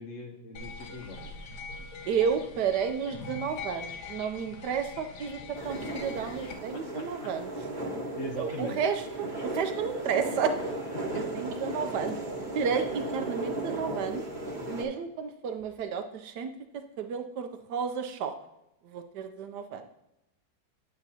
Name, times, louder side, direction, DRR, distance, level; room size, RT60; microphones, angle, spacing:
voice 1, 0.0-1.3 6.7-7.3 8.2-8.8 10.9-11.4, left 2 dB, 55° left, 3 dB, 1.0 m, -41 dB
sound 1, 0.5-6.5, left 4 dB, 85° left, 1.7 m, -43 dB
voice 2, 2.1-7.5 8.4-10.7 11.1-12.2 12.5-14.2 14.7-16.5 17.0-18.4 18.8-19.9, right 6 dB, 70° right, 8 dB, 1.1 m, -32 dB
sound 2, 5.5-14.8, right 1 dB, 30° right, 1.2 m, -36 dB
8.8 x 8.3 x 2.7 m, 0.89 s
omnidirectional pair, 2.0 m